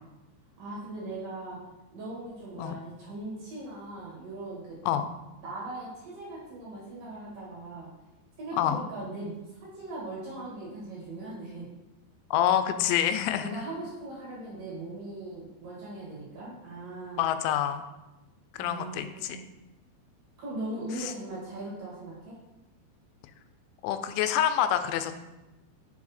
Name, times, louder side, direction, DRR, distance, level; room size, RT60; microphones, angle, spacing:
voice 1, 0.6-1.6 1.9-4.8 5.4-7.9 8.4-11.7 13.4-17.2 18.6-19.5 20.4-22.4, right 2 dB, 55° right, -5 dB, 2.8 m, -39 dB
voice 2, 12.3-13.5 17.2-17.8 18.5-19.4 21.0-21.1 23.8-25.2, left 10 dB, 90° left, 9 dB, 2.9 m, -27 dB
7.1 x 4.7 x 4.2 m, 1.0 s
omnidirectional pair, 5.2 m